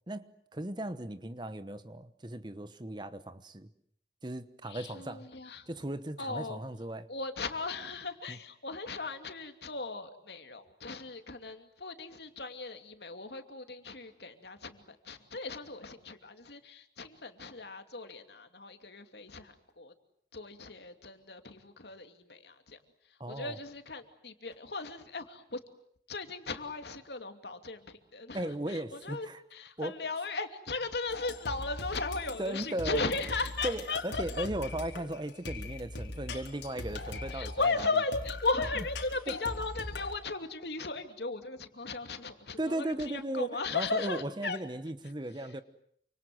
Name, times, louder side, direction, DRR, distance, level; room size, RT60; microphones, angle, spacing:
voice 1, 0.1-3.7 4.2-5.3 5.7-7.1 8.3-8.4 23.2-23.6 28.3-29.4 29.8-30.0 32.4-33.1 33.6-37.9 38.8-38.9 39.3-39.4 42.6-45.6, right 1 dB, 25° right, 12 dB, 1.1 m, -37 dB
voice 2, 4.7-5.7 6.2-6.6 7.1-19.9 20.3-22.8 23.3-25.6 26.1-27.8 28.1-28.4 28.7-34.5 37.3-44.6, left 3 dB, 70° left, 7 dB, 2.7 m, -37 dB
sound 1, 31.1-40.1, left 2 dB, 90° left, 4.1 m, -41 dB
28.5 x 26.0 x 7.8 m, 0.67 s
head